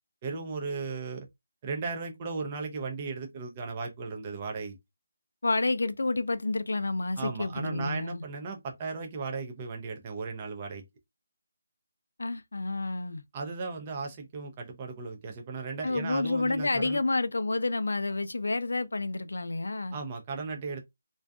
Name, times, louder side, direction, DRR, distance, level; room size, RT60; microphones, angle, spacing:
voice 1, 0.2-1.3 1.6-4.8 7.2-10.8 13.3-17.0 19.9-20.8, right 4 dB, 25° right, 0.4 m, -36 dB
voice 2, 5.4-8.2 12.2-13.2 15.8-20.0, left 2 dB, 80° left, 0.4 m, -29 dB
2.5 x 2.3 x 2.3 m
figure-of-eight pair, 165°, 0 cm